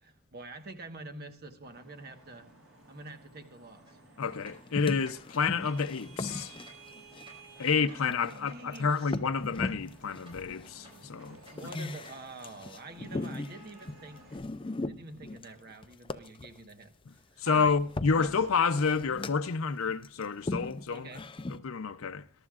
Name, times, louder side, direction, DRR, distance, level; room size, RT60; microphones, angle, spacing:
voice 1, 0.0-2.5 2.9-3.8 7.6-9.1 11.3-14.4 14.8-16.9 17.3-17.8 18.2-18.3 20.9-21.3, right 2 dB, 50° right, 1.3 m, -46 dB
Vehicle horn car horn honking / Traffic noise roadway noise, 1.6-14.4, right 3 dB, 90° right, 6.9 m, -55 dB
sound 1, 3.9-4.0 4.3-5.4 5.6-5.8 6.1-9.9 10.2-11.1 11.4-12.1, equal, 25° right, 6.0 m, -54 dB
voice 2, 4.2-6.6 7.6-11.4 17.4-21.1 21.5-22.2, left 5 dB, 85° left, 0.6 m, -29 dB
sound 2, 4.2-8.4 8.7-16.6 17.5-19.5 20.0-21.6, left 2 dB, 25° left, 0.5 m, -39 dB
21.5 x 12.0 x 2.4 m
head